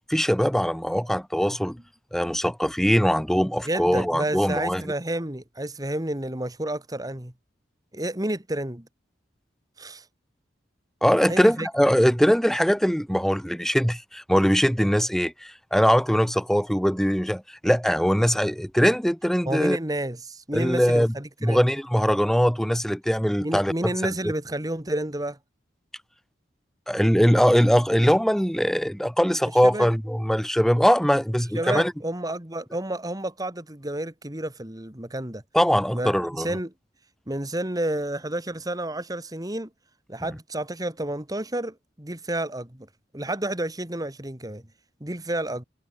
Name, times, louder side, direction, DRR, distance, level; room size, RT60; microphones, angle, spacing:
voice 1, 0.1-1.8 2.1-4.8 11.0-19.8 20.5-21.1 21.4-23.7 24.0-24.1 26.9-31.9 35.5-36.5, equal, ahead, 2.3 m, -21 dB
voice 2, 3.6-7.3 7.9-8.9 9.8-10.1 11.3-11.7 19.5-21.7 23.4-25.4 29.6-29.9 31.5-35.4 35.9-36.7 37.3-39.7 40.1-42.9 43.1-44.6 45.0-45.6, right 1 dB, 20° right, 2.2 m, -30 dB
head